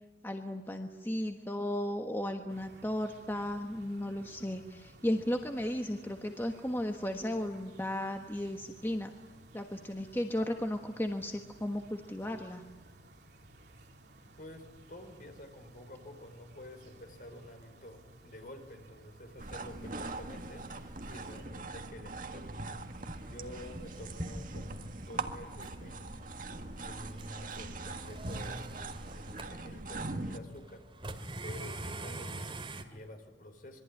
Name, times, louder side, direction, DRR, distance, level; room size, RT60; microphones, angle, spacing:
voice 1, 0.2-9.1 9.5-12.6, left 1 dB, 15° left, 4 dB, 1.4 m, -35 dB
sound 1, 2.5-21.5, right 1 dB, 65° right, 3.3 m, -57 dB
voice 2, 14.4-22.6 22.9-26.3 26.8-33.8, left 1 dB, 50° left, 6 dB, 4.9 m, -50 dB
sound 2, 19.4-30.4, right 2 dB, 50° right, 1.8 m, -41 dB
sound 3, 22.8-32.8, right 1 dB, 30° right, 2.3 m, -45 dB
26.5 x 22.5 x 9.9 m, 1.2 s
head